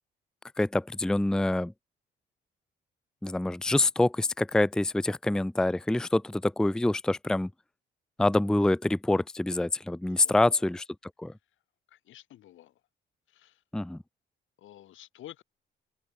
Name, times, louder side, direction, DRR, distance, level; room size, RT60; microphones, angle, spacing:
voice 1, 0.6-1.7 3.2-7.5 8.2-10.8 11.2-11.3 13.7-14.0, left 2 dB, 5° left, 0.5 m, -26 dB
voice 2, 10.1-10.7 11.9-12.8 13.3-13.6 14.6-15.4, left 13 dB, 80° left, 2.7 m, -51 dB
open air
cardioid pair, 90°, 20 cm